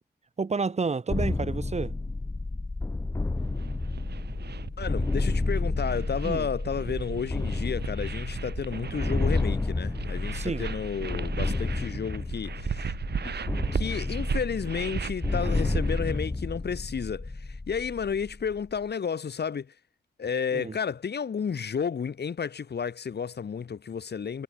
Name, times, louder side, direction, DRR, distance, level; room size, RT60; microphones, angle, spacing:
voice 1, 0.4-1.9 6.2-6.5 10.3-10.6 20.5-20.7, right 4 dB, 40° right, 3.1 m, -30 dB
sound 1, 1.1-18.8, left 2 dB, 20° left, 0.7 m, -31 dB
sound 2, 3.4-16.2, right 7 dB, 90° right, 2.0 m, -37 dB
voice 2, 4.8-12.9 13.7-19.7 20.2-24.4, left 6 dB, 80° left, 5.6 m, -32 dB
wide cardioid pair, 170°, 17 cm